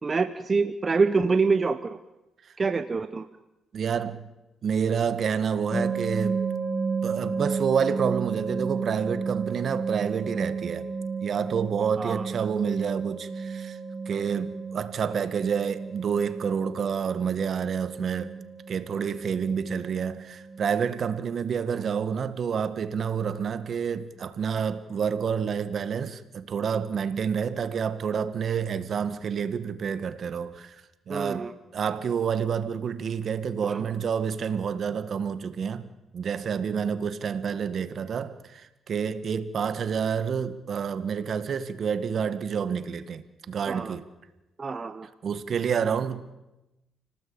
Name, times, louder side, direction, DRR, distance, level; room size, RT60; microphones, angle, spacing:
voice 1, 0.0-2.0 2.6-3.3 12.0-12.3 31.1-31.5 33.6-33.8 43.7-44.0 44.6-45.1, right 4 dB, 30° right, 1.1 m, -26 dB
voice 2, 3.7-4.3 4.6-6.5 7.0-10.9 11.2-13.8 14.1-18.3 18.7-30.8 31.1-35.8 36.1-44.0 45.2-46.3, right 7 dB, 55° right, 1.9 m, -28 dB
sound 1, 5.7-20.6, right 5 dB, ahead, 4.4 m, -33 dB
30.0 x 18.5 x 8.9 m
cardioid pair, 90°, 0 cm